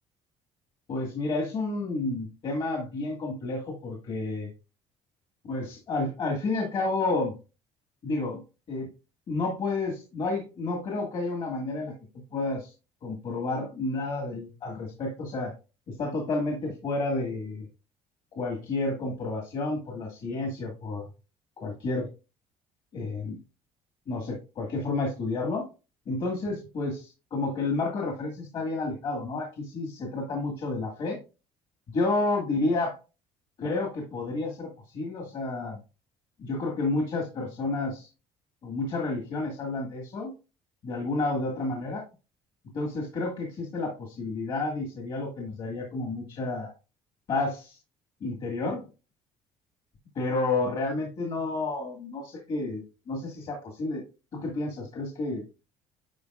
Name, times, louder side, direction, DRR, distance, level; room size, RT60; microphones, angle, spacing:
voice 1, 0.9-4.5 5.4-7.3 8.0-8.4 8.7-8.9 9.3-11.9 12.3-12.7 13.0-15.5 15.9-17.6 18.3-21.1 21.6-22.1 22.9-23.4 24.1-25.7 26.1-31.2 31.9-32.9 33.6-35.8 36.4-38.1 38.6-40.3 40.8-42.0 42.7-46.7 47.3-47.8 48.2-48.8 50.2-54.0 54.3-55.4, left 2 dB, 50° left, 1 dB, 1.9 m, -30 dB
10.0 x 4.6 x 2.4 m, 0.31 s
cardioid pair, 140°, 12 cm